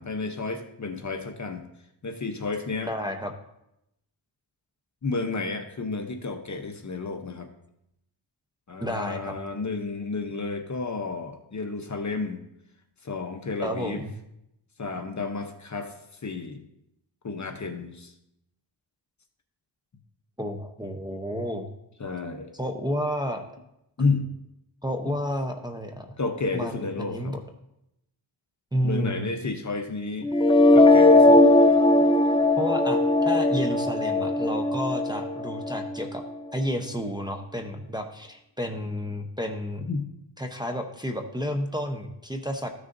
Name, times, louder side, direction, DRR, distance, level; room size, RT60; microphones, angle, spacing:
voice 1, 0.0-1.7 2.0-2.9 5.0-7.5 8.7-12.4 13.0-14.0 14.8-16.0 16.2-16.6 17.2-18.1 22.0-22.5 24.0-24.3 25.0-25.2 26.2-27.4 28.8-30.3 30.7-31.4 39.9-40.1, left 3 dB, 40° left, 5 dB, 0.9 m, -31 dB
voice 2, 2.9-3.3 8.8-9.3 13.6-14.1 20.4-21.7 22.5-23.4 24.8-26.2 26.5-27.4 28.7-29.2 32.6-36.2 36.5-39.9 40.4-42.7, equal, 10° right, 2 dB, 0.8 m, -31 dB
sound 1, 30.2-36.2, left 2 dB, 15° left, 0.3 m, -19 dB
14.0 x 6.4 x 2.6 m, 0.82 s
wide cardioid pair, 85°, 46 cm